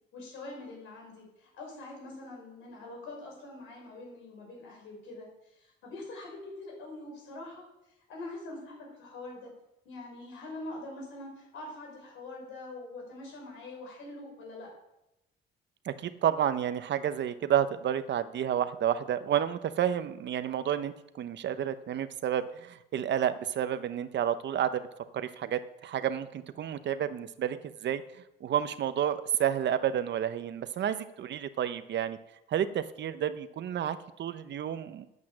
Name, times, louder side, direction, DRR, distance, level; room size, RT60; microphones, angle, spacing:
voice 1, 0.1-7.6 8.1-9.5 9.8-14.7, left 2 dB, 85° left, -1 dB, 5.4 m, -44 dB
voice 2, 15.8-24.9 25.1-28.0 28.4-32.2 32.5-35.1, right 9 dB, 65° right, 12 dB, 0.8 m, -30 dB
9.4 x 8.0 x 7.5 m, 0.88 s
cardioid pair, 90°, 20 cm